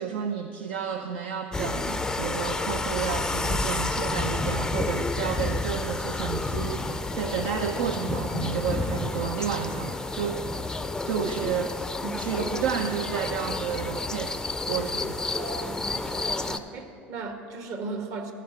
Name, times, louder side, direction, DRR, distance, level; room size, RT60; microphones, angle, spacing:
voice 1, 0.0-10.8 11.1-11.9 12.2-14.4 14.7-15.4, right 7 dB, 70° right, 6 dB, 0.5 m, -31 dB
sound 1, 1.5-16.6, left 2 dB, 10° left, 0.4 m, -30 dB
voice 2, 15.4-18.3, right 3 dB, 55° right, 5 dB, 1.3 m, -37 dB
13.5 x 5.1 x 5.6 m, 2.3 s
hypercardioid pair, 75°, 6 cm